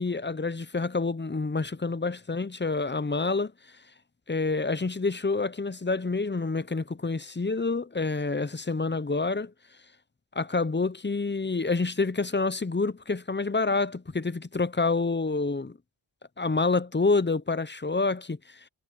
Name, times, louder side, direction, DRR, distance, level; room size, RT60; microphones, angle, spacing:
voice 1, 0.0-3.5 4.3-9.5 10.4-15.8 16.4-18.4, left 3 dB, 25° left, 0.6 m, -27 dB
wide cardioid pair, 65°, 49 cm